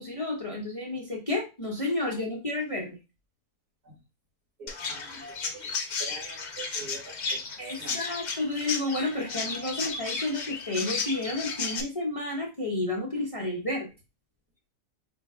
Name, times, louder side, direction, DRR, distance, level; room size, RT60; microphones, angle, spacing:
voice 1, 0.0-3.0 7.6-13.9, left 2 dB, 25° left, -2 dB, 0.9 m, -31 dB
voice 2, 4.6-5.7 6.0-7.4 7.8-8.0, right 3 dB, 75° right, -4 dB, 3.0 m, -45 dB
Chirp tweet, 4.7-11.8, left 4 dB, 85° left, 0.4 m, -34 dB
5.0 x 2.3 x 3.6 m, 0.27 s
omnidirectional pair, 1.7 m